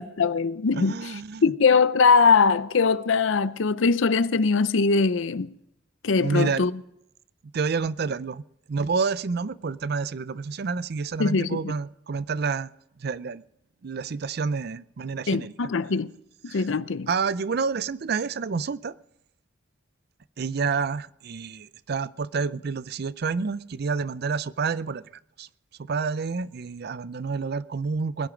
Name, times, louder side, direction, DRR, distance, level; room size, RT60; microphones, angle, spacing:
voice 1, 0.0-1.0 1.4-5.5 6.0-6.7 11.2-11.6 15.3-16.1 16.5-17.1, left 4 dB, 75° left, 0.6 m, -21 dB
voice 2, 0.7-1.5 6.2-6.6 7.5-12.7 13.0-13.4 13.8-15.5 16.5-16.7 17.1-18.9 20.4-25.0 25.4-25.5 25.8-28.3, right 5 dB, 55° right, 0.4 m, -29 dB
20.5 x 11.0 x 5.1 m
head